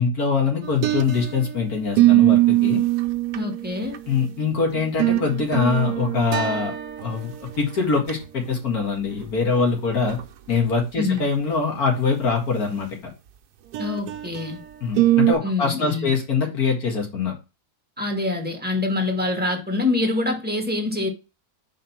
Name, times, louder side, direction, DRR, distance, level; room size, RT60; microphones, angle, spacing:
voice 1, 0.0-2.8 4.1-6.7 7.0-10.2 10.5-12.9 14.8-17.3, left 5 dB, 70° left, 2.3 m, -23 dB
sound 1, 0.6-1.5 2.0-4.1 4.7-7.2 7.5-7.6 8.0-8.1 9.6-9.7 10.1-10.2 13.7-14.5 15.0-15.3, right 16 dB, 85° right, 1.2 m, -21 dB
voice 2, 3.3-4.0 10.9-11.3 13.8-14.6 15.4-16.1 18.0-21.1, left 3 dB, 5° right, 1.5 m, -25 dB
5.0 x 3.9 x 5.7 m
omnidirectional pair, 1.7 m